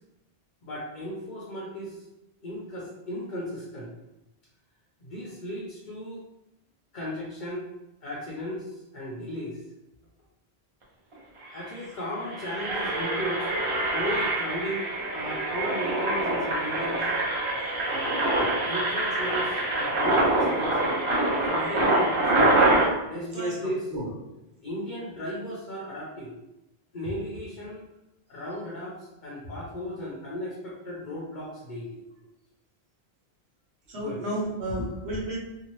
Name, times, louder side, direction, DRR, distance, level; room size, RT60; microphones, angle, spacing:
voice 1, 0.6-2.0 2.4-3.9 5.0-6.2 6.9-7.7 8.0-9.6 11.5-13.5 13.9-17.1 17.8-18.3 18.6-21.1 21.4-22.5 23.1-23.8 24.6-26.3 26.9-27.8 28.3-32.0 33.9-34.2 34.8-34.9, equal, 55° left, -4 dB, 0.7 m, -35 dB
Engine, 11.1-11.2 11.5-11.7 12.1-22.9, right 2 dB, 35° right, 0.6 m, -25 dB
voice 2, 23.1-23.6 23.9-24.1 33.9-35.4, right 1 dB, 85° right, -5 dB, 1.2 m, -32 dB
2.7 x 2.4 x 3.0 m, 0.91 s
omnidirectional pair, 1.1 m